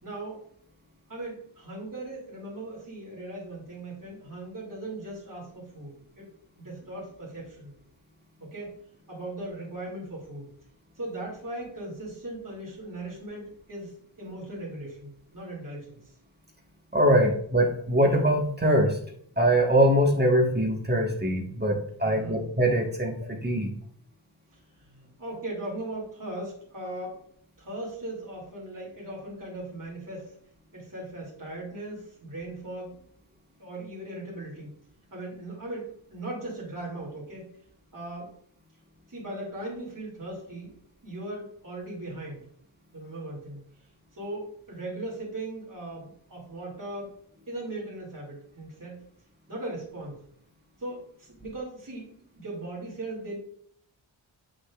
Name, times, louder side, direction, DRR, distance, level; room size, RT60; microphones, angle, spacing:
voice 1, 0.0-0.4 1.1-6.3 6.6-7.7 8.4-8.8 9.1-10.5 11.0-16.0 17.2-17.3 22.0-22.4 24.7-27.2 27.6-30.4 30.7-33.0 33.6-34.8 35.1-37.5 37.9-38.3 39.1-40.8 41.0-42.4 42.9-43.6 44.1-47.1 47.5-49.1 49.5-50.2 50.8-53.4, right 1 dB, 40° right, -4 dB, 2.7 m, -38 dB
voice 2, 16.9-19.0 19.4-23.7, right 1 dB, 20° right, 1 dB, 1.5 m, -23 dB
7.9 x 6.3 x 2.4 m, 0.63 s
wide cardioid pair, 60°, 48 cm